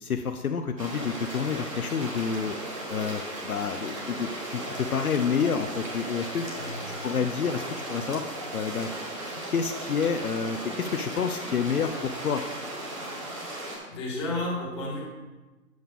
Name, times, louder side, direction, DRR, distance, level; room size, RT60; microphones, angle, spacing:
voice 1, 0.0-2.5 2.9-6.5 7.0-8.2 8.5-8.9 9.5-12.4, left 6 dB, 70° left, 6 dB, 0.7 m, -29 dB
sound 1, 0.8-13.8, right 1 dB, 20° right, 1.2 m, -36 dB
voice 2, 6.5-6.9 13.9-15.1, left 2 dB, 20° left, -4 dB, 1.6 m, -32 dB
8.1 x 7.8 x 3.6 m, 1.2 s
figure-of-eight pair, 150°, 46 cm